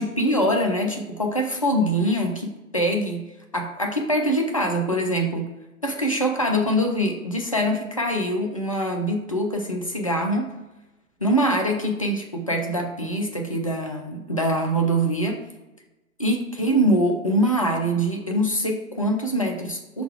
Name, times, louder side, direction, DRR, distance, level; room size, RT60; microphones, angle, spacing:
voice 1, 0.0-3.2 3.5-5.5 5.8-10.5 11.2-15.4 16.2-20.0, equal, 25° left, 2 dB, 0.3 m, -24 dB
5.3 x 4.0 x 4.7 m, 1.0 s
figure-of-eight pair, 120°, 44 cm